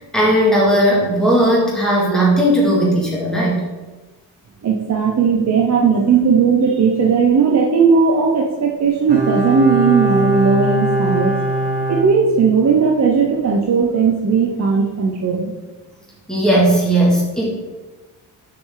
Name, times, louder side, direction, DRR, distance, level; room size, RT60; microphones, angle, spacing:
voice 1, 0.1-3.6 16.3-17.5, right 1 dB, ahead, -5 dB, 2.3 m, -16 dB
voice 2, 4.6-11.3 11.9-15.5, right 5 dB, 40° right, -1 dB, 0.8 m, -16 dB
Bowed string instrument, 9.1-12.8 13.1-13.2, right 1 dB, 90° right, 1.8 m, -21 dB
6.5 x 5.9 x 3.9 m, 1.2 s
cardioid pair, 140°, 40 cm